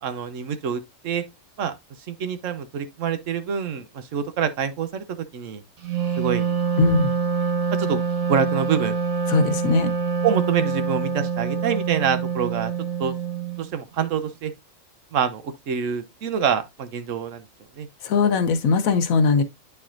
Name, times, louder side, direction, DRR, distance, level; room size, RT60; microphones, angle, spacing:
voice 1, 0.0-1.2 1.6-1.7 2.1-5.0 5.3-5.6 6.2-6.6 7.8-8.0 8.3-9.0 10.2-12.7 13.0-13.1 13.6-14.5 15.1-17.4 17.8-17.9, right 7 dB, 70° right, 1.1 m, -26 dB
Wind instrument woodwind instrument, 5.8-13.7, right 6 dB, 90° right, 1.5 m, -25 dB
voice 2, 6.8-7.1 9.3-9.9 18.0-19.4, left 4 dB, 90° left, 1.2 m, -20 dB
9.4 x 4.4 x 2.5 m
omnidirectional pair, 1.4 m